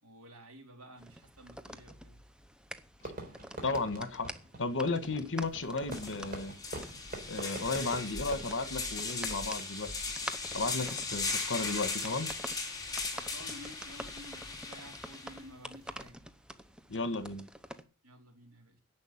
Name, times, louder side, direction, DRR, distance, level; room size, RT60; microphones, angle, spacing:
voice 1, 0.0-2.2 13.1-16.2 18.0-18.8, equal, 75° right, 3.8 m, -52 dB
sound 1, 1.0-17.8, equal, 5° right, 0.8 m, -48 dB
Fireworks, 3.0-9.5, right 1 dB, 40° right, 3.8 m, -45 dB
voice 2, 3.6-4.3 4.6-6.5 7.3-10.1 10.5-12.3 16.9-17.4, left 3 dB, 60° left, 1.6 m, -34 dB
sound 2, 5.4-5.5 5.9-15.4, left 3 dB, 15° left, 3.4 m, -38 dB
10.5 x 7.3 x 8.7 m
head